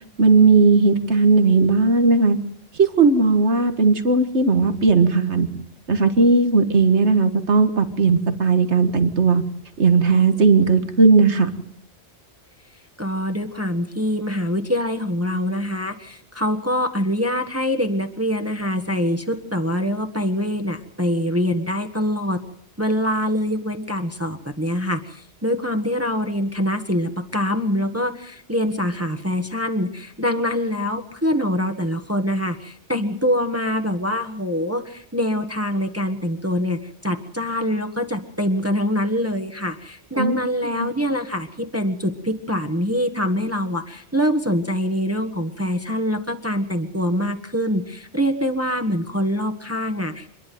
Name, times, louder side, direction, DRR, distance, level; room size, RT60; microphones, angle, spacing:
voice 1, 0.2-2.4 2.8-5.5 5.9-9.4 9.8-11.5 40.2-40.4 40.8-40.9, right 4 dB, 90° right, 8 dB, 2.0 m, -17 dB
voice 2, 13.0-22.4 22.8-50.3, equal, 15° right, 4 dB, 1.4 m, -24 dB
26.5 x 11.0 x 9.3 m, 0.66 s
omnidirectional pair, 1.1 m